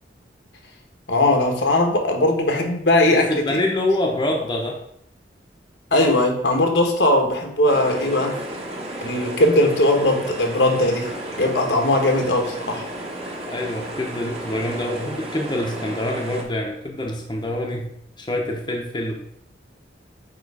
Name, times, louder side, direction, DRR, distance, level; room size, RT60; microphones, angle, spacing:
voice 1, 1.1-3.6 5.9-8.4 9.0-11.1 11.4-12.8, left 1 dB, 75° left, 3 dB, 1.2 m, -19 dB
voice 2, 3.1-4.8 13.5-17.9 18.2-19.1, left 1 dB, 25° left, 0 dB, 0.9 m, -26 dB
sound 1, 7.7-16.4, right 1 dB, 35° right, 1.4 m, -33 dB
8.6 x 3.1 x 4.8 m, 0.70 s
head